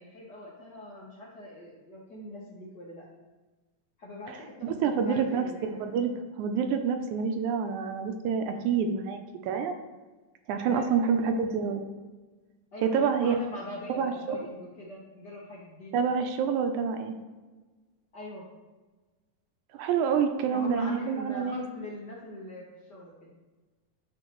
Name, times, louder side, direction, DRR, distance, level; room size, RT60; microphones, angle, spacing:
voice 1, 0.0-3.1 4.0-6.1 10.7-10.9 12.7-16.1 18.1-18.5 20.5-23.4, left 1 dB, 90° left, -6 dB, 0.9 m, -42 dB
voice 2, 4.6-6.1 6.4-9.8 10.5-11.8 12.8-13.4 14.0-14.4 15.9-17.2 19.7-21.6, right 6 dB, 80° right, 6 dB, 2.0 m, -27 dB
10.5 x 4.5 x 3.1 m, 1.3 s
omnidirectional pair, 3.6 m